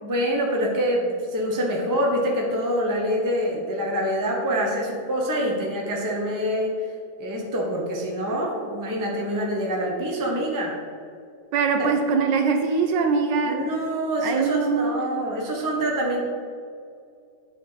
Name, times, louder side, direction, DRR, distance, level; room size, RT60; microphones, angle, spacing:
voice 1, 0.0-6.7 7.2-10.8 11.8-11.9 13.4-16.2, equal, 20° right, -1 dB, 0.5 m, -25 dB
voice 2, 11.5-13.6 14.2-14.9, right 5 dB, 75° right, 4 dB, 1.2 m, -22 dB
9.6 x 4.1 x 4.0 m, 2.3 s
omnidirectional pair, 2.2 m